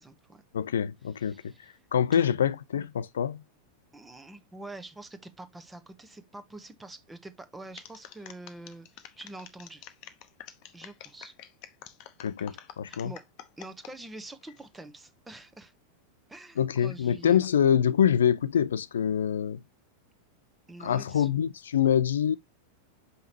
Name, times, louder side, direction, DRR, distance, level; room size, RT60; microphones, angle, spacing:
voice 1, 0.0-0.4 1.2-1.7 2.1-2.3 3.9-9.9 10.7-11.3 12.9-13.2 13.6-15.7 16.3-17.5 20.7-21.3, right 2 dB, 10° right, 1.1 m, -46 dB
voice 2, 0.5-1.5 1.9-3.4 12.2-13.1 16.6-19.6 20.8-22.4, left 8 dB, 65° left, 0.6 m, -25 dB
sound 1, 7.8-13.9 14.4-14.8, left 11 dB, 40° left, 0.9 m, -47 dB
6.5 x 5.5 x 2.9 m
figure-of-eight pair, 90°, 0 cm